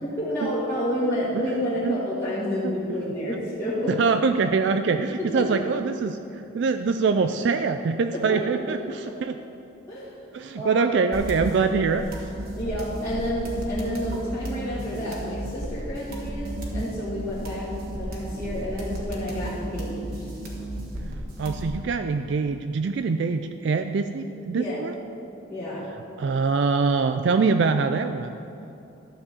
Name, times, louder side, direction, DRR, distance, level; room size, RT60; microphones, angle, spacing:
voice 1, 0.0-3.9 5.2-5.6 8.1-8.4 8.7-8.8 9.0-9.1 9.9-10.2 10.6-10.9 12.5-20.3 24.5-24.8 25.5-25.9, equal, 15° left, -11 dB, 1.7 m, -30 dB
voice 2, 3.9-9.4 10.3-12.1 21.0-24.9 26.2-28.3, right 4 dB, 65° right, 8 dB, 0.3 m, -24 dB
sound 1, 11.1-21.8, right 1 dB, 45° right, 1.5 m, -33 dB
12.5 x 4.6 x 7.1 m, 2.7 s
head